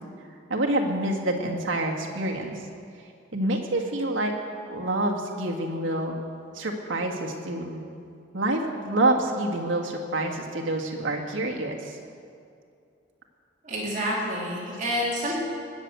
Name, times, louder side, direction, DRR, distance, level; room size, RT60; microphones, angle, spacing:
voice 1, 0.5-2.5 3.3-4.3 4.7-6.2 6.5-7.9 8.3-12.0 15.2-15.3, right 1 dB, 75° right, 0 dB, 1.8 m, -27 dB
voice 2, 13.6-15.4, equal, 40° right, -5 dB, 3.0 m, -28 dB
19.5 x 6.8 x 8.1 m, 2.4 s
head